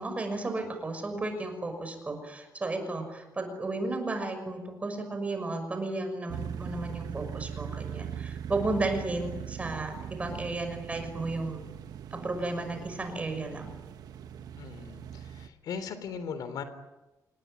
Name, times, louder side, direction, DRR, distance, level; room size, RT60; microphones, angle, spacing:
voice 1, 0.0-11.6 12.1-13.7, right 2 dB, 20° right, 6 dB, 6.0 m, -33 dB
sound 1, 6.3-15.5, right 9 dB, 80° right, 1.1 m, -40 dB
voice 2, 14.6-16.6, left 6 dB, 85° left, 11 dB, 3.5 m, -38 dB
28.5 x 20.0 x 9.9 m, 1.0 s
wide cardioid pair, 170°, 7 cm